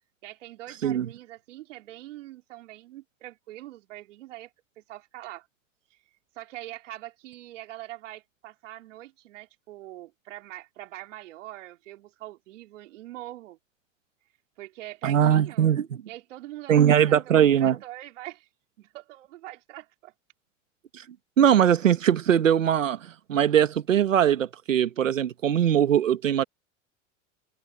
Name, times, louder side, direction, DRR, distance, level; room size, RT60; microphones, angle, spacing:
voice 1, 0.2-4.5 4.8-5.5 5.9-6.0 6.4-13.6 14.6-15.7 16.1-18.5 18.8-20.1, right 16 dB, 75° right, 4.0 m, -43 dB
voice 2, 15.0-15.9 16.7-17.8 21.4-26.4, right 9 dB, 90° right, 1.6 m, -21 dB
hypercardioid pair, 90°, 38 cm